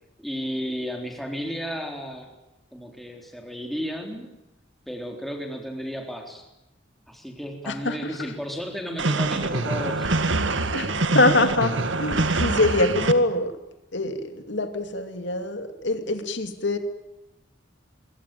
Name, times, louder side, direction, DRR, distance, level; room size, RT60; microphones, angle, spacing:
voice 1, 0.2-2.3 2.7-4.3 4.9-6.5 7.1-10.1, equal, ahead, 2 dB, 3.8 m, -33 dB
voice 2, 7.7-8.1 10.7-11.7 12.0-13.5 13.9-16.8, left 2 dB, 70° left, 7 dB, 2.5 m, -24 dB
sound 1, 9.0-13.1, right 2 dB, 80° right, 2.0 m, -24 dB
25.0 x 23.5 x 9.2 m, 0.94 s
head